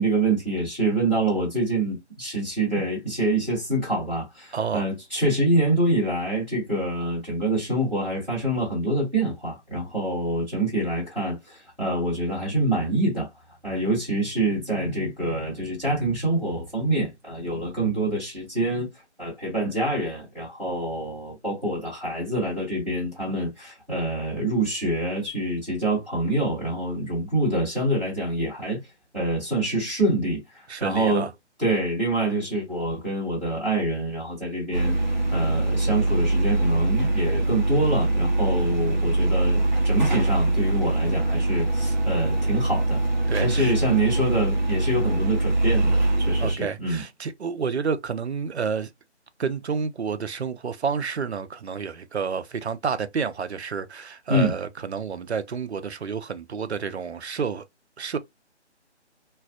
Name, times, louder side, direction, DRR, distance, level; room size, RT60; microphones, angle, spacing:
voice 1, 0.0-13.3 13.6-18.9 19.2-28.8 29.1-31.3 31.6-34.9 35.3-43.0 43.4-47.0 54.3-54.5, right 1 dB, ahead, 1.3 m, -26 dB
voice 2, 4.5-4.9 30.7-31.3 43.3-43.7 46.4-48.9 49.4-57.6 58.0-58.2, right 6 dB, 65° right, 0.5 m, -29 dB
sound 1, 34.7-46.5, right 2 dB, 40° right, 0.9 m, -23 dB
3.2 x 2.4 x 2.2 m
figure-of-eight pair, 150°, 35 cm